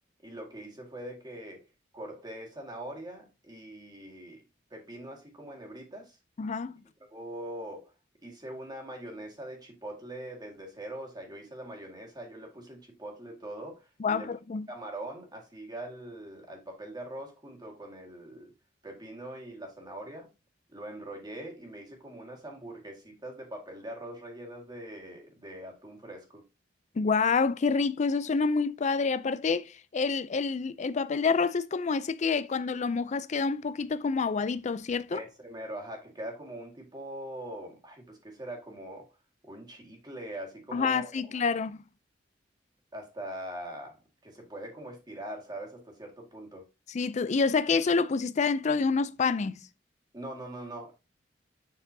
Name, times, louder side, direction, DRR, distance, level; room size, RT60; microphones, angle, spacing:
voice 1, 0.2-1.6 1.9-4.4 4.7-6.2 7.1-7.9 8.2-14.3 14.7-18.5 18.8-20.3 20.7-26.4 35.1-39.1 39.4-41.4 42.9-46.7 50.1-50.9, right 1 dB, 25° right, 1.8 m, -42 dB
voice 2, 6.4-6.8 14.0-14.7 27.0-35.2 40.7-41.8 46.9-49.6, left 4 dB, 40° left, 0.4 m, -27 dB
7.1 x 5.8 x 2.7 m
head